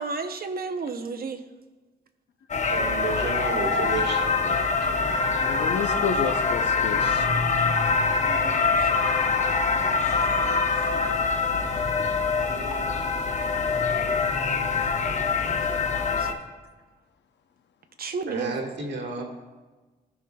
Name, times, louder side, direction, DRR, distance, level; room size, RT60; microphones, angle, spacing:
voice 1, 0.0-1.4 7.8-9.2 9.7-11.2 12.5-12.9 13.7-14.1 14.6-16.4 18.0-18.5, right 4 dB, 60° right, 8 dB, 0.7 m, -36 dB
sound 1, 2.5-16.3, left 4 dB, 40° left, 1.0 m, -24 dB
voice 2, 2.7-5.2 18.3-19.2, right 3 dB, 80° right, 1 dB, 1.7 m, -32 dB
voice 3, 5.3-7.3 9.2-10.3 11.0-11.1, left 6 dB, 80° left, 8 dB, 0.7 m, -32 dB
16.0 x 5.4 x 2.3 m, 1.2 s
cardioid pair, 95°, 18 cm